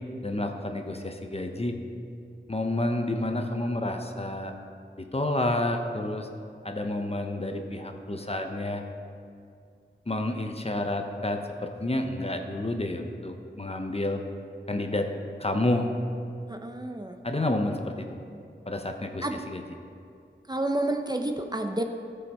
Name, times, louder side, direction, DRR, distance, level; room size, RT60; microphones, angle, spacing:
voice 1, 0.2-1.8 2.5-4.5 5.0-6.3 6.6-8.8 10.1-14.2 14.7-15.1 15.4-15.9 17.2-18.1 18.7-19.6, left 1 dB, 30° left, 4 dB, 0.8 m, -29 dB
voice 2, 16.5-17.2 19.2-19.4 20.5-21.8, right 1 dB, 20° right, 4 dB, 0.6 m, -29 dB
14.0 x 5.6 x 4.2 m, 2.4 s
wide cardioid pair, 45°, 20 cm